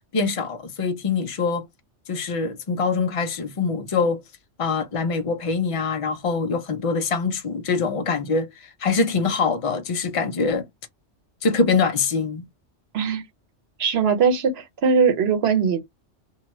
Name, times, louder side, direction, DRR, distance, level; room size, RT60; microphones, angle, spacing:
voice 1, 0.1-1.7 2.1-4.2 4.6-8.5 8.8-10.7 11.4-12.4, left 4 dB, 65° left, 0.3 m, -24 dB
voice 2, 13.8-15.8, right 6 dB, 60° right, 0.9 m, -20 dB
2.7 x 2.2 x 2.9 m
omnidirectional pair, 1.2 m